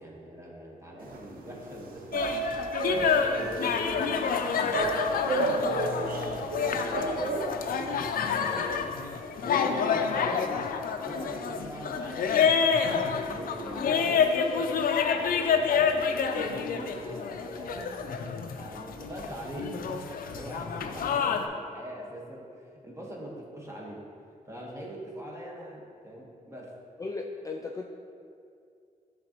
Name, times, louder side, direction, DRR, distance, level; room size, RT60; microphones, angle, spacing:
voice 1, 0.0-2.6 2.8-8.9 9.4-9.9 10.2-10.6 11.0-14.6 15.1-24.0 24.4-26.7, right 1 dB, 20° right, -3 dB, 1.3 m, -42 dB
sound 1, 1.0-8.0, right 3 dB, 90° right, 0.6 m, -32 dB
sound 2, 2.1-21.5, left 6 dB, 85° left, 0.4 m, -28 dB
voice 2, 9.7-10.0 17.7-17.9 18.3-18.4 27.0-27.9, left 3 dB, 25° left, 1 dB, 0.3 m, -38 dB
10.5 x 3.8 x 2.9 m, 2.4 s
wide cardioid pair, 100°, 14 cm